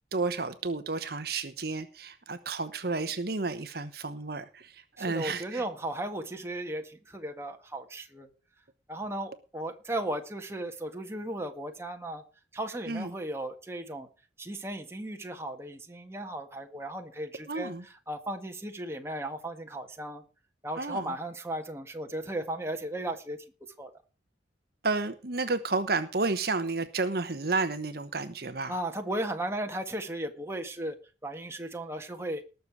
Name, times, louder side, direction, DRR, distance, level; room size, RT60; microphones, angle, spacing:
voice 1, 0.1-5.6 12.9-13.1 17.5-17.8 20.8-21.1 24.8-28.7, right 3 dB, 55° right, 10 dB, 1.0 m, -31 dB
voice 2, 5.0-8.3 8.9-12.2 12.5-14.1 14.4-20.2 20.6-23.4 23.8-23.9 28.7-31.0 31.2-32.4, right 1 dB, 15° right, 4 dB, 1.7 m, -36 dB
19.5 x 6.9 x 4.7 m, 0.34 s
head